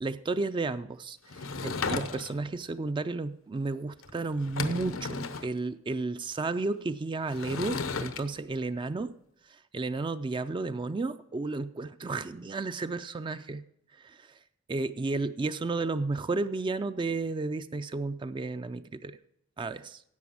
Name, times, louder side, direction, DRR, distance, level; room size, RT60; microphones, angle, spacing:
voice 1, 0.0-9.1 9.5-13.6 13.9-14.4 14.7-19.2 19.6-20.0, right 3 dB, 25° right, 12 dB, 0.3 m, -33 dB
Sliding door / Wood, 1.3-2.5 4.0-4.1 4.4-5.5 7.3-8.2, left 4 dB, 85° left, 0.9 m, -34 dB
11.0 x 7.7 x 7.0 m, 0.76 s
head